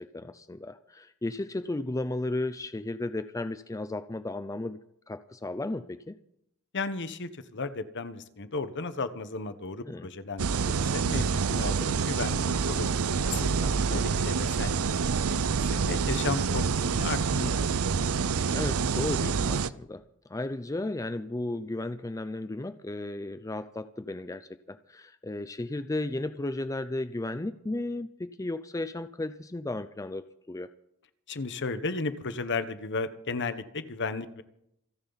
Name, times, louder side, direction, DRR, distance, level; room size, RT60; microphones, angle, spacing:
voice 1, 0.0-4.8 5.1-6.2 9.9-10.1 18.5-30.7, left 2 dB, 15° left, 12 dB, 0.5 m, -34 dB
voice 2, 6.7-12.9 13.2-14.7 15.3-15.4 15.7-17.8 31.3-34.4, left 3 dB, 55° left, 11 dB, 1.2 m, -34 dB
sound 1, 10.4-19.7, right 5 dB, 70° right, 0.6 m, -27 dB
27.5 x 10.5 x 4.1 m, 0.76 s
head